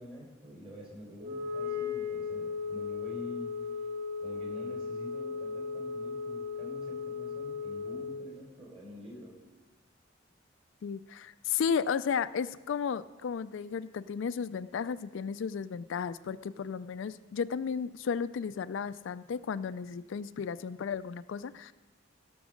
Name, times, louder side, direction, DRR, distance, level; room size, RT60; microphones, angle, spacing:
voice 1, 0.0-3.5 4.2-9.4, equal, 30° right, -2 dB, 4.1 m, -47 dB
Wind instrument woodwind instrument, 1.2-8.3, left 5 dB, 55° right, 1.1 m, -36 dB
voice 2, 10.8-21.7, left 6 dB, 65° left, 14 dB, 0.4 m, -34 dB
16.0 x 6.1 x 6.3 m, 1.2 s
head